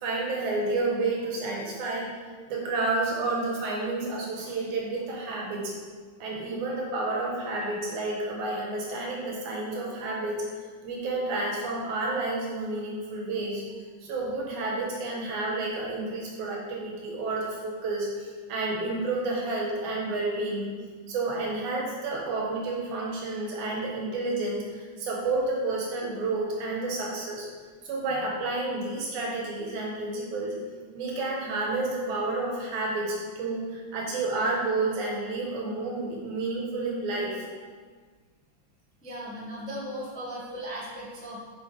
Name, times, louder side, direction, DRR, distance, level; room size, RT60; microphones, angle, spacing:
voice 1, 0.0-2.1 2.5-5.7 6.2-10.4 10.8-13.6 14.0-20.7 21.1-27.5 27.8-30.5 30.9-37.4, right 2 dB, 85° right, -2 dB, 2.8 m, -30 dB
voice 2, 39.0-41.4, equal, 5° left, -7 dB, 0.6 m, -37 dB
6.9 x 6.4 x 3.4 m, 1.5 s
omnidirectional pair, 3.4 m